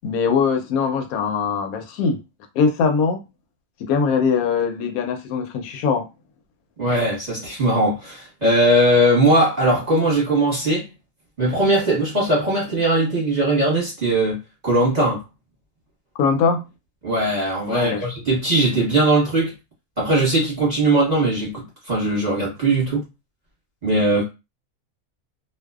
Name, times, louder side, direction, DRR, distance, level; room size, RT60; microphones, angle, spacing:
voice 1, 0.0-2.2 2.6-3.2 3.8-6.1 16.2-16.6 17.7-18.0, left 5 dB, 75° left, 1.0 m, -21 dB
voice 2, 6.8-10.9 11.4-14.4 14.6-15.2 17.0-19.5 20.0-23.0 23.8-24.2, right 1 dB, 35° right, 0.9 m, -19 dB
2.6 x 2.1 x 2.3 m
omnidirectional pair, 1.6 m